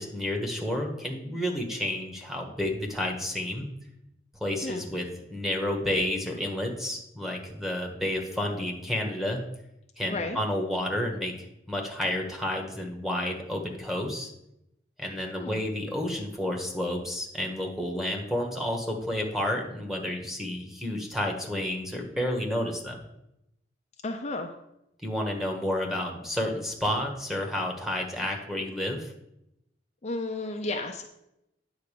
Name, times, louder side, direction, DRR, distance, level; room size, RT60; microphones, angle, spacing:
voice 1, 0.0-3.7 4.4-9.4 10.0-11.3 11.7-14.3 15.0-23.0 25.0-29.1, left 1 dB, ahead, 0 dB, 1.3 m, -30 dB
voice 2, 24.0-24.5 30.0-31.0, left 2 dB, 40° left, 3 dB, 0.6 m, -33 dB
9.4 x 4.0 x 6.7 m, 0.83 s
head